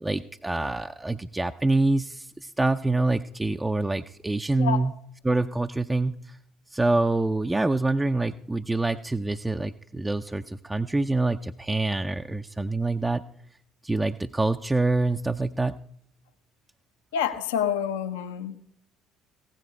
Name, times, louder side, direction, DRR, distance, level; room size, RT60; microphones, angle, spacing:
voice 1, 0.0-4.9 5.2-6.4 6.7-13.2 13.8-15.8, right 2 dB, 15° right, 7 dB, 0.5 m, -26 dB
voice 2, 17.1-18.6, left 8 dB, 70° left, 10 dB, 0.8 m, -27 dB
15.5 x 10.0 x 4.7 m, 0.67 s
figure-of-eight pair, 55°, 0 cm